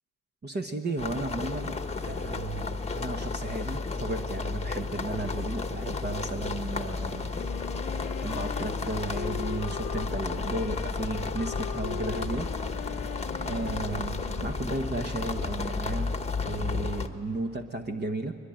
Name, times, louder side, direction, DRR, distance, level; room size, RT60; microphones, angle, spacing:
voice 1, 0.4-1.7 2.1-7.3 8.2-13.1 13.4-16.2 16.4-18.3, right 3 dB, 25° right, 5 dB, 1.2 m, -34 dB
sound 1, 1.0-17.1, left 4 dB, 20° left, 1.3 m, -32 dB
Wind instrument woodwind instrument, 7.3-15.0, left 15 dB, 90° left, 0.8 m, -40 dB
22.5 x 22.0 x 9.0 m, 2.6 s
supercardioid pair, 90°, 36 cm